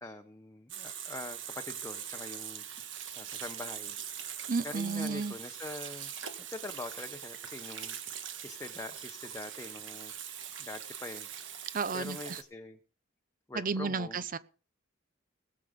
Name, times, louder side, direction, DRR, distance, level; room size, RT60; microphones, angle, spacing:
voice 1, 0.0-2.6 3.2-4.0 4.6-6.1 6.4-10.1 10.6-11.3 11.9-12.8 13.5-14.3, left 2 dB, 15° left, 0.9 m, -44 dB
Water tap faucet / Sink (filling or washing), 0.7-12.4, right 9 dB, 70° right, 1.5 m, -42 dB
voice 2, 4.5-5.3 11.7-12.4 13.5-14.4, right 4 dB, 45° right, 0.8 m, -32 dB
19.0 x 7.7 x 5.2 m
head